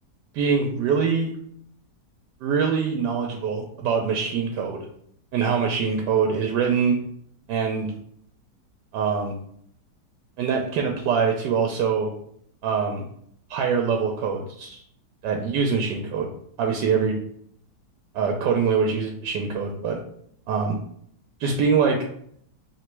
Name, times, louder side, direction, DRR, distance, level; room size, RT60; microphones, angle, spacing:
voice 1, 0.3-1.3 2.4-4.8 5.3-7.0 7.5-7.9 8.9-9.4 10.4-12.1 12.6-13.1 13.5-14.8 15.2-16.3 16.6-17.1 18.1-20.0 20.5-20.8 21.4-22.1, right 6 dB, 85° right, 2 dB, 1.2 m, -24 dB
3.3 x 2.9 x 4.4 m, 0.66 s
omnidirectional pair, 1.8 m